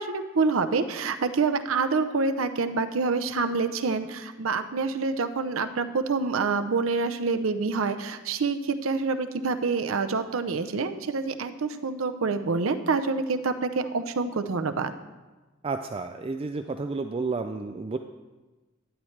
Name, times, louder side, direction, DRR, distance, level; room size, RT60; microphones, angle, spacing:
voice 1, 0.0-14.9, right 4 dB, 85° right, 9 dB, 0.6 m, -27 dB
voice 2, 15.6-18.0, right 3 dB, 30° right, 7 dB, 0.3 m, -31 dB
11.5 x 10.5 x 3.3 m, 1.2 s
head